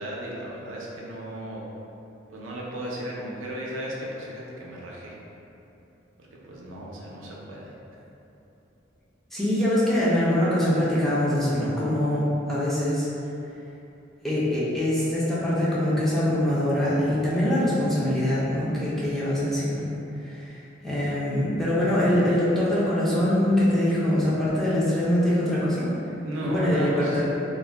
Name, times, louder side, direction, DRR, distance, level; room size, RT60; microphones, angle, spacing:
voice 1, 0.0-1.7 2.3-5.2 6.4-7.7 26.2-27.2, right 1 dB, 90° right, -4 dB, 0.5 m, -35 dB
voice 2, 9.3-13.1 14.2-19.8 20.2-20.5 20.8-25.9 26.4-27.2, left 1 dB, ahead, -10 dB, 0.5 m, -23 dB
2.4 x 2.1 x 3.3 m, 2.8 s
head